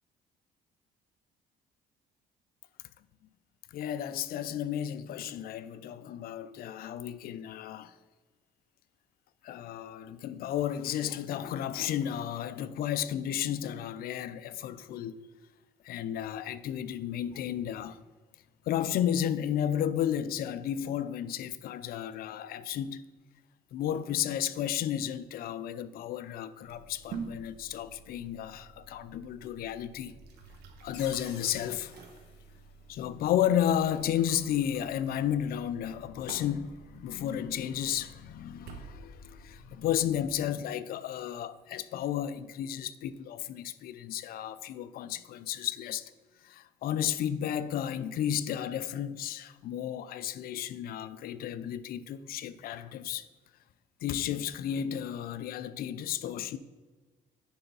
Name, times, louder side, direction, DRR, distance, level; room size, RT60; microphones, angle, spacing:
voice 1, 3.7-7.9 9.4-15.2 15.8-18.0 18.7-23.0 23.7-30.1 30.8-31.9 32.9-46.0 46.4-53.3 54.0-56.6, left 10 dB, 60° left, 0.5 m, -33 dB
sound 1, 26.6-40.5, right 5 dB, 75° right, 1.0 m, -49 dB
sound 2, 30.9-33.5, left 7 dB, 85° left, 1.3 m, -51 dB
9.7 x 3.4 x 5.4 m
cardioid pair, 110°, 17 cm